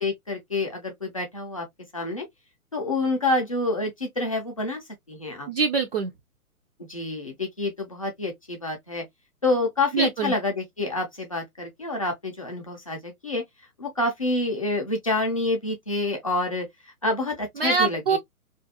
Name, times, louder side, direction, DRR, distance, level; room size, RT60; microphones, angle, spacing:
voice 1, 0.0-1.7 1.9-2.3 2.7-5.5 6.9-9.0 9.4-13.4 13.8-18.2, left 2 dB, 25° left, 0.4 m, -28 dB
voice 2, 5.5-6.1 9.9-10.3 17.6-18.2, right 5 dB, 45° right, 0.4 m, -23 dB
2.5 x 2.2 x 2.6 m
figure-of-eight pair, 130°, 44 cm